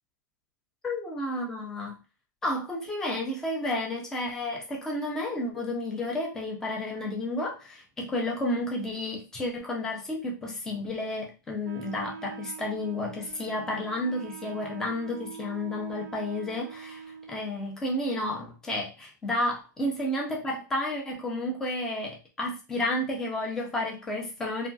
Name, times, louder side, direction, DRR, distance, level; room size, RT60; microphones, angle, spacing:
voice 1, 0.8-1.9 2.4-24.7, left 1 dB, 5° left, 0 dB, 0.4 m, -31 dB
Wind instrument woodwind instrument, 11.6-17.5, right 7 dB, 75° right, 0.4 m, -44 dB
2.9 x 2.6 x 2.2 m, 0.30 s
supercardioid pair, 180°, 10 cm